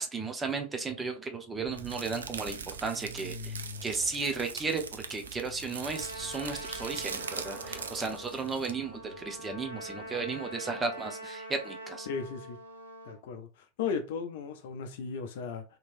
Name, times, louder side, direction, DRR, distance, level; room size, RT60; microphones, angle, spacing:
voice 1, 0.0-12.1, right 4 dB, 15° right, 0.7 m, -34 dB
Truck, 1.5-10.3, right 1 dB, 45° right, 1.5 m, -47 dB
sound 1, 1.8-8.7, right 6 dB, 70° right, 0.3 m, -42 dB
Trumpet, 5.8-13.2, right 1 dB, 90° right, 1.1 m, -44 dB
voice 2, 12.1-12.6 13.0-15.6, left 6 dB, 55° left, 0.5 m, -36 dB
3.0 x 2.9 x 2.5 m
figure-of-eight pair, 90°, 0 cm